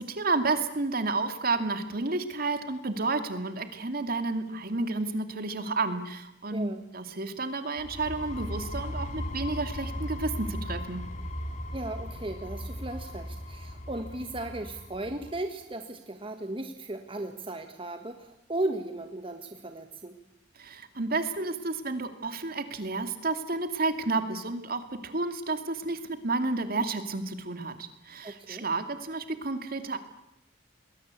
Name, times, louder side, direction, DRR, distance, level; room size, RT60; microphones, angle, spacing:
voice 1, 0.0-11.0 20.6-30.0, right 3 dB, 50° right, 8 dB, 2.5 m, -31 dB
voice 2, 6.5-6.8 11.7-20.2 28.2-28.7, right 2 dB, 30° right, 6 dB, 1.6 m, -36 dB
sound 1, 7.8-15.4, equal, 40° left, 2.9 m, -37 dB
28.0 x 21.0 x 8.4 m, 0.82 s
head